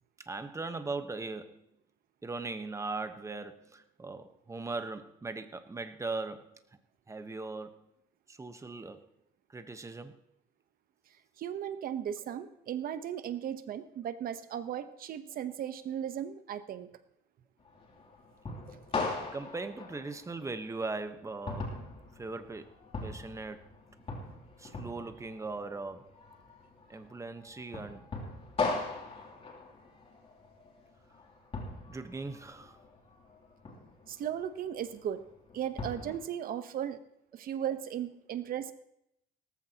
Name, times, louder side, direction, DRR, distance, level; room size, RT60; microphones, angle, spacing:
voice 1, 0.3-1.6 2.2-6.6 7.1-7.8 8.3-9.1 9.5-10.1 19.3-21.7 22.2-22.7 23.0-23.7 24.6-26.1 26.9-28.0 31.9-32.8, right 3 dB, 15° right, 9 dB, 1.1 m, -39 dB
voice 2, 11.4-16.9 34.1-35.2 35.5-37.0 37.3-38.7, right 9 dB, 60° right, 11 dB, 1.0 m, -36 dB
sound 1, 17.6-36.2, left 3 dB, 35° left, 3.0 m, -40 dB
18.0 x 14.5 x 2.9 m, 0.78 s
cardioid pair, 110°, 17 cm